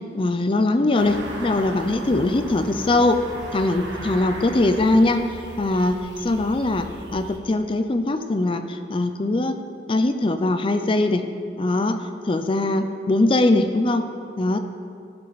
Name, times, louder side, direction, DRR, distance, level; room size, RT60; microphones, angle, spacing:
voice 1, 0.1-3.2 3.5-9.6 9.9-11.2 11.6-12.0 12.2-14.0 14.4-14.6, left 2 dB, 30° left, 8 dB, 0.4 m, -21 dB
sound 1, 0.9-7.4, right 1 dB, 85° right, 1.6 m, -37 dB
15.0 x 5.7 x 4.0 m, 2.4 s
head